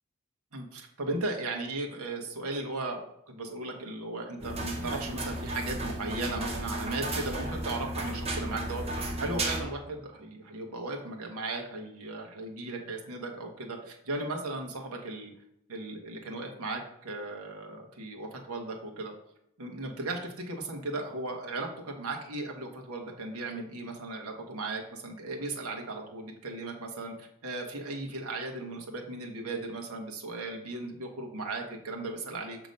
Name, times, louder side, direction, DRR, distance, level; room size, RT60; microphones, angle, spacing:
voice 1, 0.5-3.0 3.3-8.8 9.2-15.3 15.7-19.1 19.6-32.6, right 2 dB, 75° right, 2 dB, 1.1 m, -36 dB
sound 1, 4.4-9.6, right 1 dB, 25° right, 0.8 m, -34 dB
6.5 x 2.9 x 5.2 m, 0.76 s
head